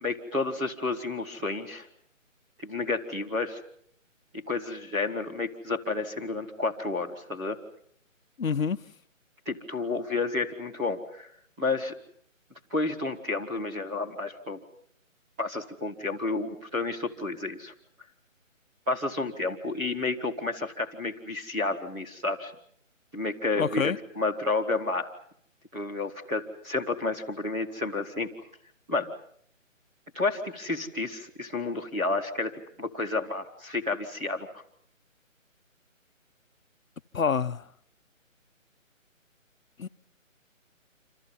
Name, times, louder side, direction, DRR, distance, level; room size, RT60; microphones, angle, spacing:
voice 1, 0.0-1.9 2.6-3.6 4.3-7.6 9.4-11.3 11.6-11.9 12.7-14.6 15.4-17.7 18.9-22.5 23.1-25.1 25.7-28.3 28.9-29.1 30.1-34.5, left 3 dB, 5° right, 1.5 m, -31 dB
voice 2, 8.4-8.8 23.6-24.0 37.1-37.6 39.8-39.9, left 6 dB, 80° left, 1.1 m, -27 dB
29.0 x 27.5 x 5.7 m
hypercardioid pair, 175°, 40 cm